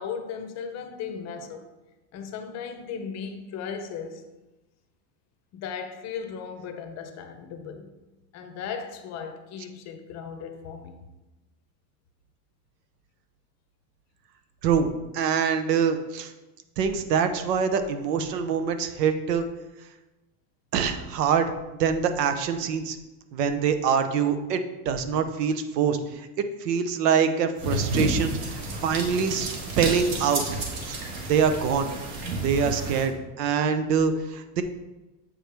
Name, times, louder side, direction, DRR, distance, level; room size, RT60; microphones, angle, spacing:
voice 1, 0.0-1.7 2.1-4.2 5.5-7.9 8.3-11.0, left 6 dB, 35° left, 7 dB, 0.7 m, -36 dB
voice 2, 14.6-16.3 16.8-19.4 20.7-21.5 21.8-23.0 23.3-26.0 26.6-30.4 30.9-31.0 31.3-31.9 32.4-34.6, right 6 dB, 90° right, 9 dB, 0.9 m, -24 dB
sound 1, 27.6-33.1, right 2 dB, 50° right, 1.5 m, -31 dB
7.6 x 4.8 x 3.4 m, 1.1 s
supercardioid pair, 140°, 46 cm